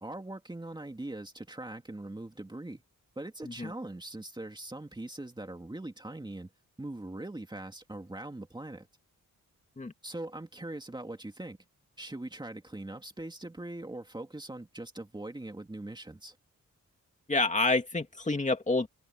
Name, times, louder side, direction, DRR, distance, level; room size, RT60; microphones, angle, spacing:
voice 1, 0.0-2.8 3.2-6.5 6.8-8.9 10.0-11.6 12.0-16.4, right 2 dB, 15° right, 2.5 m, -41 dB
voice 2, 17.3-18.9, left 2 dB, 20° left, 2.5 m, -28 dB
open air
wide cardioid pair, 110°, 32 cm